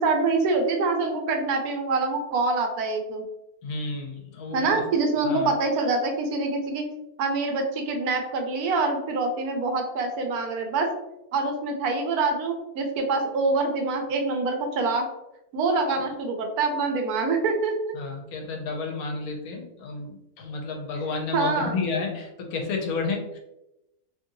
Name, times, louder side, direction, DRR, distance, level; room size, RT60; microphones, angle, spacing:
voice 1, 0.0-3.2 4.5-6.8 7.2-10.9 11.3-15.1 15.5-17.9 21.3-21.8, right 3 dB, 85° right, 3 dB, 1.1 m, -25 dB
voice 2, 3.6-4.8 5.2-5.5 17.9-23.4, left 4 dB, 80° left, 1 dB, 1.1 m, -31 dB
2.9 x 2.5 x 2.7 m, 0.90 s
omnidirectional pair, 1.6 m